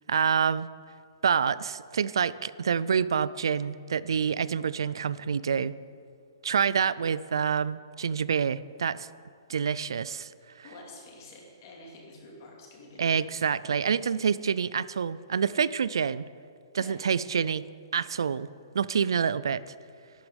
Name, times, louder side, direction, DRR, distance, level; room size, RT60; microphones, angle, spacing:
voice 1, 0.1-0.7 1.2-5.7 6.4-9.1 9.5-10.3 13.0-16.2 16.7-17.6 17.9-18.5 18.7-19.6, right 7 dB, 90° right, 18 dB, 0.3 m, -27 dB
voice 2, 10.6-13.5 16.7-17.0, left 2 dB, 40° left, -1 dB, 2.6 m, -48 dB
11.5 x 9.3 x 5.2 m, 2.3 s
hypercardioid pair, 165°, 2 cm